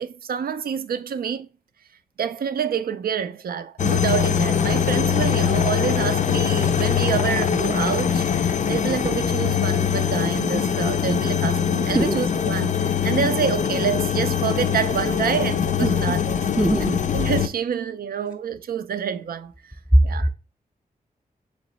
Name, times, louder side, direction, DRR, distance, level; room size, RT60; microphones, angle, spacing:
voice 1, 0.0-1.5 2.2-16.3 17.1-19.5 20.0-20.3, right 7 dB, 75° right, 0.4 m, -27 dB
sound 1, 3.8-17.5, left 8 dB, 55° left, 0.4 m, -22 dB
voice 2, 16.5-17.0 19.9-20.3, right 1 dB, 5° right, 0.5 m, -19 dB
3.2 x 3.0 x 4.1 m
cardioid pair, 75°, 15 cm